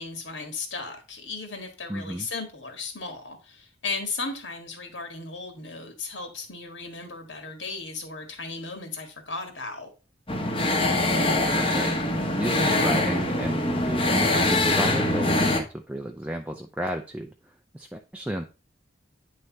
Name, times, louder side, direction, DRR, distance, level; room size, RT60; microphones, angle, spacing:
voice 1, 0.0-9.9, left 4 dB, 75° left, 1.8 m, -36 dB
voice 2, 1.9-2.3 10.7-12.0 12.4-17.3 17.7-18.4, right 1 dB, 5° right, 0.4 m, -32 dB
sound 1, 10.3-15.6, left 2 dB, 30° left, 1.1 m, -23 dB
9.4 x 3.3 x 4.1 m
head